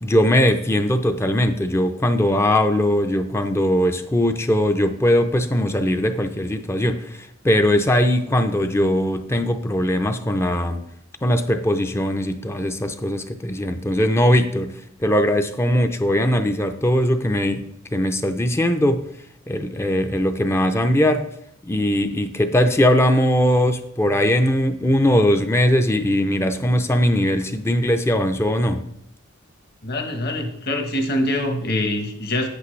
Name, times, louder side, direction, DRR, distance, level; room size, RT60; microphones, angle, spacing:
voice 1, 0.0-10.8 11.2-14.7 15.0-19.0 19.5-21.3 21.6-28.8, equal, 10° left, 8 dB, 0.4 m, -20 dB
voice 2, 29.8-32.5, left 1 dB, 50° left, 4 dB, 1.2 m, -24 dB
8.7 x 8.3 x 3.2 m, 0.74 s
head